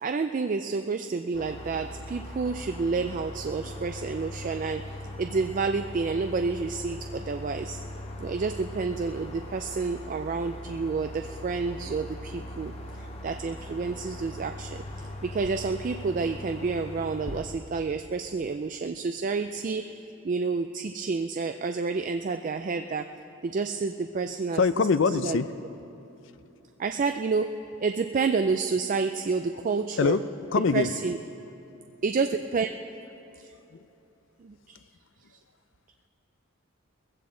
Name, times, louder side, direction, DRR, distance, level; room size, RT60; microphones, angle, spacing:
voice 1, 0.0-4.8 5.2-7.8 8.2-20.0 20.2-23.1 23.4-24.6 25.1-25.4 26.8-30.2 30.7-31.2 32.0-32.7 33.4-33.5 34.4-34.8, right 4 dB, 40° right, 7 dB, 0.3 m, -29 dB
sound 1, 1.3-17.4, left 1 dB, 30° left, 1.1 m, -40 dB
voice 2, 24.5-25.5 30.0-30.2 30.5-30.9 33.7-33.9, left 5 dB, 60° left, 14 dB, 0.4 m, -23 dB
20.5 x 15.5 x 3.8 m, 2.9 s
head